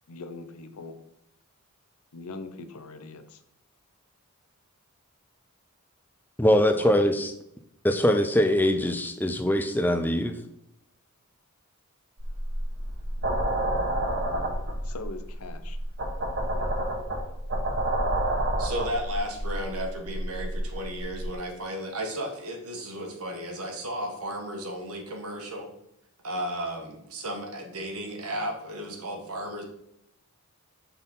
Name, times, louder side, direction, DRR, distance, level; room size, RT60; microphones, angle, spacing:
voice 1, 0.1-1.0 2.1-3.4 14.8-15.8 16.6-16.7, left 3 dB, 80° left, 9 dB, 0.7 m, -41 dB
voice 2, 6.4-7.3 7.8-10.4, left 1 dB, 10° left, 8 dB, 0.4 m, -22 dB
sound 1, 12.2-21.3, right 1 dB, 50° right, 1.2 m, -29 dB
voice 3, 18.6-25.7 26.2-29.6, equal, 80° right, 3 dB, 1.4 m, -34 dB
5.6 x 4.2 x 5.3 m, 0.78 s
head